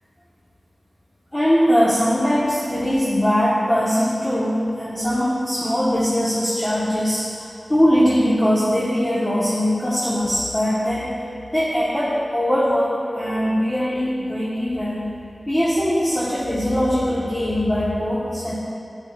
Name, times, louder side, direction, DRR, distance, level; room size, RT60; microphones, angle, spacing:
voice 1, 1.3-11.1 11.5-15.0 15.5-18.5, equal, 20° left, -8 dB, 1.1 m, -21 dB
10.5 x 5.0 x 2.4 m, 2.5 s
wide cardioid pair, 55°, 0 cm